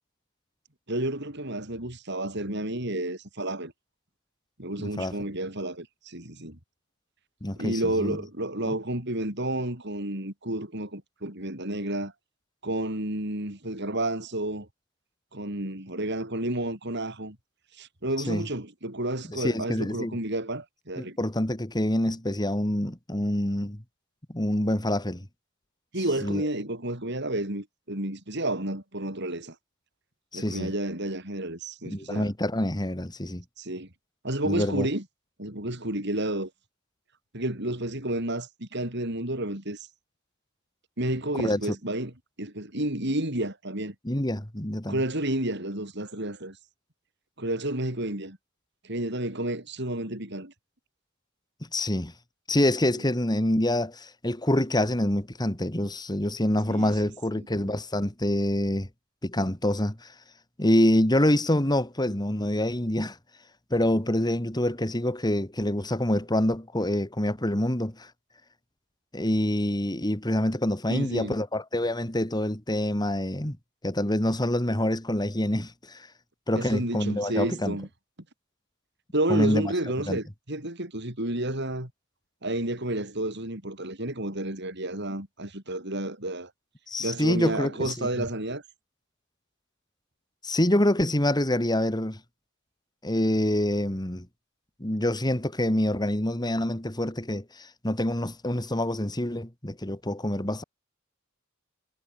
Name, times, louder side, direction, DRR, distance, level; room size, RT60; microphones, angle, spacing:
voice 1, 0.9-3.7 4.6-6.6 7.6-12.1 12.6-14.7 15.3-17.4 17.8-21.2 25.9-29.6 30.3-32.3 33.6-33.9 34.2-35.0 35.4-36.5 37.3-39.9 41.0-42.1 42.4-44.0 44.9-46.6 47.4-48.4 48.8-50.5 56.7-56.9 57.4-57.7 70.9-71.4 76.5-77.9 79.1-81.9 82.4-86.5 87.0-88.6, right 1 dB, 55° right, 7.3 m, -31 dB
voice 2, 4.8-5.2 7.4-8.2 8.7-8.8 18.3-18.4 19.3-20.2 21.0-23.8 24.3-25.3 26.2-26.5 30.3-30.7 31.8-33.4 34.4-34.9 41.4-41.8 44.0-45.0 51.7-52.1 52.5-58.9 59.2-60.1 60.6-63.2 63.7-68.1 69.1-73.6 73.8-76.1 76.5-77.8 79.3-79.7 80.1-80.2 86.9-88.1 90.4-92.2 93.0-94.3 94.8-100.6, left 1 dB, 20° left, 2.5 m, -26 dB
head